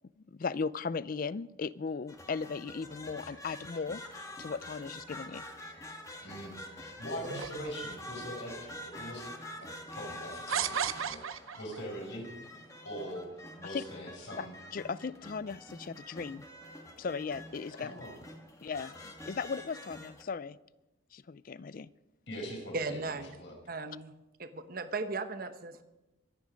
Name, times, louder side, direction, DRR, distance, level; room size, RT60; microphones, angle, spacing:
voice 1, 0.3-5.4 13.6-13.8 14.4-14.5 14.7-16.4 17.0-17.9 18.6-18.9 19.3-20.6 21.1-21.9, left 5 dB, 45° left, 19 dB, 0.4 m, -37 dB
sound 1, 2.1-20.2, left 1 dB, 15° left, 1.7 m, -46 dB
voice 2, 6.2-9.3 9.6-12.3 12.8-13.3 13.6-14.5 17.8-18.1 22.3-23.1 23.4-23.5, equal, 60° left, 0 dB, 5.3 m, -42 dB
sound 2, 7.2-8.2 9.0-9.1 10.5-11.8, right 8 dB, 90° right, 0.7 m, -34 dB
voice 3, 22.7-23.4 23.7-24.1 24.4-25.8, right 3 dB, 45° right, 9 dB, 1.0 m, -36 dB
24.0 x 9.5 x 5.2 m, 0.98 s
head